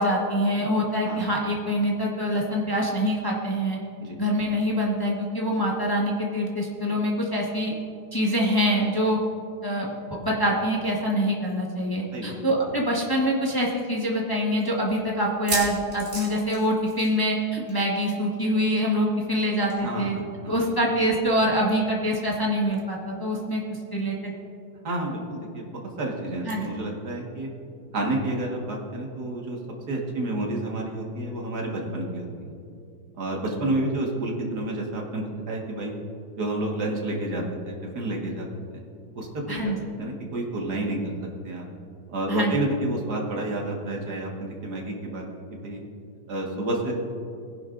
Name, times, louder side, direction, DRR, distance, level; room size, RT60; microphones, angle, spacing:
voice 1, 0.0-3.8 4.2-7.7 8.1-9.2 9.6-20.2 20.5-23.6 23.9-24.3 26.4-26.6 39.5-39.8 42.3-42.5, equal, 15° left, -3 dB, 1.1 m, -25 dB
sound 1, 12.6-12.7 13.0-13.1 13.7-13.8 15.3-17.4 17.7-17.9 18.1-18.2 19.7-19.8, right 2 dB, 30° right, 3.2 m, -33 dB
voice 2, 19.8-20.5 24.8-25.7 26.0-27.5 27.9-29.6 29.9-32.5 33.1-35.9 36.4-38.5 39.1-39.7 40.0-41.0 41.4-41.7 42.1-45.2 45.6-45.8 46.3-46.9, right 1 dB, 50° right, -1 dB, 2.1 m, -30 dB
19.5 x 10.5 x 2.6 m, 2.6 s
omnidirectional pair, 2.3 m